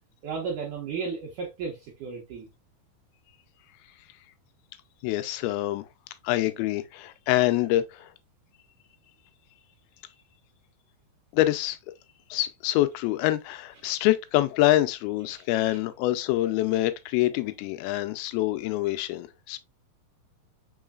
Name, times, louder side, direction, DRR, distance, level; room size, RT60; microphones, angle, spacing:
voice 1, 0.2-2.5 15.6-15.8, right 5 dB, 70° right, 2.2 m, -34 dB
voice 2, 5.0-5.8 6.2-8.1 11.3-11.8 12.3-19.6, left 15 dB, 90° left, 2.5 m, -25 dB
5.5 x 3.8 x 2.3 m
omnidirectional pair, 4.3 m